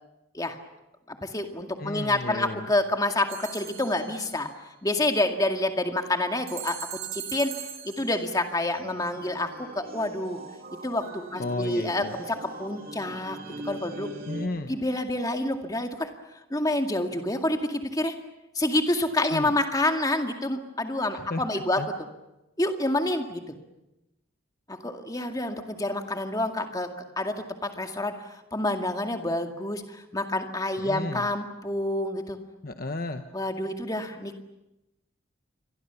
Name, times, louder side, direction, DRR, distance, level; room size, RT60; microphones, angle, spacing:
voice 1, 1.1-4.5 4.8-7.5 7.8-10.4 10.8-13.4 13.6-14.1 14.7-16.1 16.5-18.1 18.5-21.8 22.6-23.4 24.7-26.9 27.2-27.3 27.6-32.4 33.3-34.4, left 1 dB, 20° left, 5 dB, 2.1 m, -28 dB
voice 2, 1.8-2.7 11.4-12.2 14.3-14.8 19.3-19.5 21.1-21.4 21.8-21.9 30.8-31.3 32.6-33.2, left 2 dB, 45° left, 7 dB, 1.1 m, -33 dB
sound 1, 3.3-4.3 6.5-8.3, right 11 dB, 80° right, 4.6 m, -39 dB
sound 2, 7.5-7.7 8.0-8.3 8.7-14.5, right 1 dB, 45° right, 3.0 m, -42 dB
29.0 x 23.5 x 7.1 m, 0.94 s
head